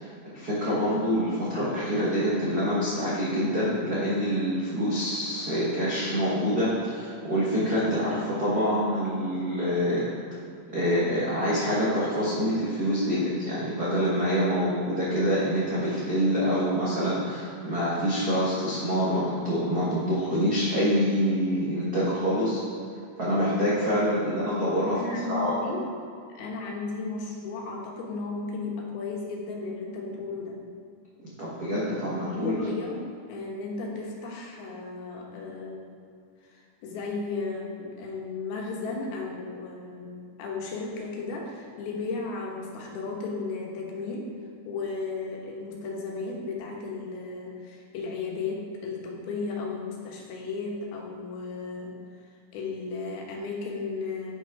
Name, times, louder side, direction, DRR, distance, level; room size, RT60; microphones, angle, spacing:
voice 1, 0.0-10.1 10.7-22.6 23.2-25.0 25.3-25.5 31.4-32.6, equal, 75° right, -8 dB, 0.8 m, -26 dB
voice 2, 24.9-25.8 26.3-30.6 32.3-35.9 36.5-44.3 44.6-52.0 52.5-54.3, left 3 dB, 80° left, -1 dB, 3.1 m, -34 dB
9.5 x 6.0 x 4.7 m, 2.4 s
omnidirectional pair, 4.4 m